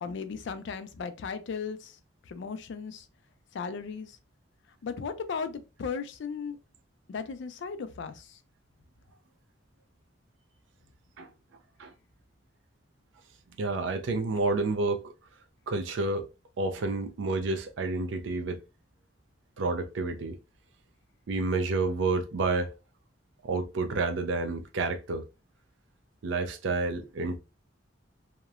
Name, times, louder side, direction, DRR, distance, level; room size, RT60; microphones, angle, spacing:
voice 1, 0.0-1.9 2.3-3.0 3.5-4.1 4.8-6.6 7.1-8.4, left 5 dB, 70° left, 0.4 m, -36 dB
voice 2, 13.6-15.1 15.7-16.3 16.6-18.6 19.6-20.4 21.3-22.7 23.4-25.2 26.2-27.4, right 3 dB, 75° right, 0.4 m, -29 dB
2.8 x 2.0 x 2.3 m
head